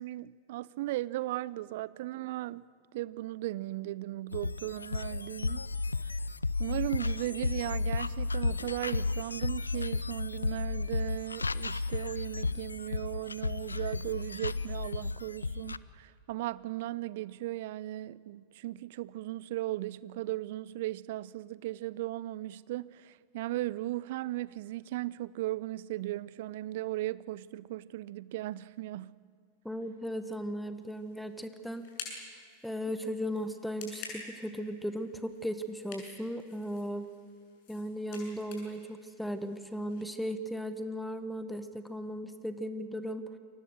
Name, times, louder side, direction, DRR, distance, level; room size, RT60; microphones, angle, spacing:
voice 1, 0.0-2.6 2.9-5.6 6.6-29.2, right 16 dB, 50° right, 0.6 m, -37 dB
sound 1, 4.3-15.8, left 3 dB, 80° left, 0.5 m, -33 dB
voice 2, 29.6-31.8 32.6-37.1 37.7-43.2, equal, ahead, 1.2 m, -36 dB
sound 2, 30.8-40.0, left 4 dB, 45° left, 7.4 m, -50 dB
29.0 x 24.0 x 6.5 m
figure-of-eight pair, 90°, 0 cm